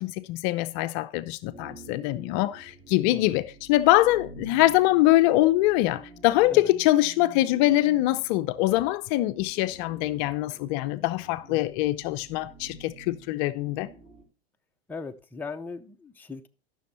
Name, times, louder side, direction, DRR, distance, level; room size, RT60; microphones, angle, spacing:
voice 1, 0.0-13.9, left 16 dB, 45° left, 0.6 m, -23 dB
sound 1, 1.5-14.2, right 2 dB, 20° right, 2.7 m, -49 dB
voice 2, 3.1-3.4 6.5-6.7 11.5-11.9 14.9-16.5, left 4 dB, 5° left, 0.7 m, -39 dB
13.0 x 6.3 x 4.2 m
hypercardioid pair, 115°, 30 cm